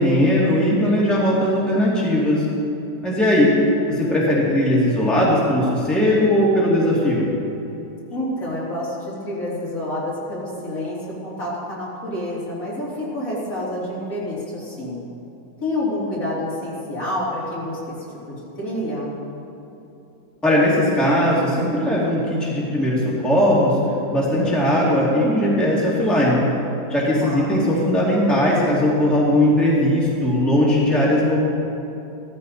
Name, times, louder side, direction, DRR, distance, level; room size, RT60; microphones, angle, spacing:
voice 1, 0.0-2.5 3.0-3.6 3.9-7.3 20.4-23.8 24.1-26.4 26.9-31.4, left 1 dB, ahead, -6 dB, 2.5 m, -19 dB
voice 2, 8.1-11.0 11.2-15.0 15.6-18.0 18.3-19.1 27.2-27.6, left 1 dB, 45° left, -7 dB, 3.7 m, -28 dB
16.5 x 14.5 x 4.3 m, 2.9 s
omnidirectional pair, 2.1 m